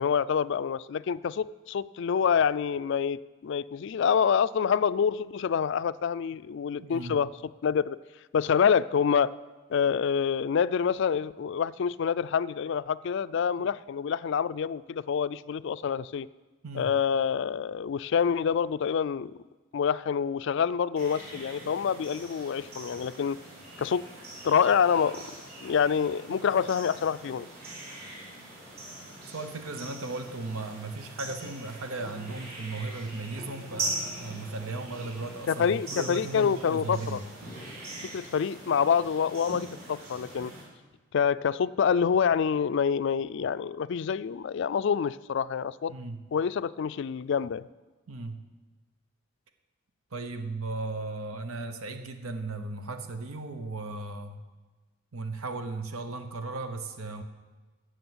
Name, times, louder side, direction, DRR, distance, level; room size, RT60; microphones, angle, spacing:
voice 1, 0.0-7.3 7.6-8.0 8.3-9.3 9.7-16.3 16.7-19.3 19.7-23.4 23.8-24.1 24.4-25.2 25.6-27.5 35.5-37.2 38.0-40.5 41.1-45.9 46.3-47.7, left 7 dB, 60° left, 16 dB, 0.3 m, -27 dB
voice 2, 6.8-7.2 13.6-13.7 16.6-16.9 29.3-37.2 45.9-46.2 48.1-48.4 50.1-54.4 55.1-57.2, right 3 dB, 90° right, 7 dB, 1.0 m, -36 dB
sound 1, 21.0-40.6, right 2 dB, 45° right, 4.6 m, -42 dB
15.0 x 6.3 x 8.0 m, 1.3 s
head